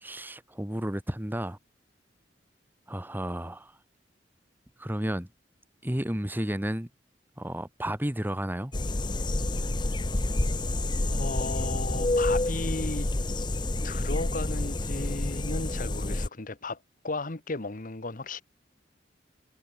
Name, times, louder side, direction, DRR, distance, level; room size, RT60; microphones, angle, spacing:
voice 1, 0.0-1.6 2.9-3.7 4.8-5.3 5.8-6.9 7.4-8.7, right 1 dB, 10° right, 1.7 m, -32 dB
sound 1, 8.7-16.3, left 2 dB, 25° left, 0.8 m, -28 dB
voice 2, 11.0-13.1 13.8-16.8 17.0-18.4, left 3 dB, 50° left, 1.4 m, -35 dB
head